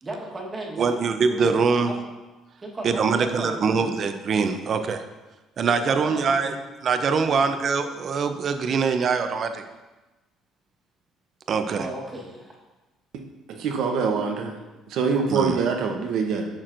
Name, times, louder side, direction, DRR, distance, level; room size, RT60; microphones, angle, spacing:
voice 1, 0.0-1.0 1.3-2.1 2.6-3.9 5.8-6.6 7.2-7.5 11.7-12.6, right 1 dB, 20° right, -2 dB, 1.3 m, -35 dB
voice 2, 0.8-1.9 2.8-5.0 5.6-6.5 6.8-9.6 11.5-11.9 15.3-15.6, right 5 dB, 40° right, 8 dB, 0.5 m, -23 dB
voice 3, 13.6-14.6 14.9-16.5, right 5 dB, 65° right, 3 dB, 0.9 m, -24 dB
8.8 x 5.9 x 2.6 m, 1.1 s
cardioid pair, 135°, 0 cm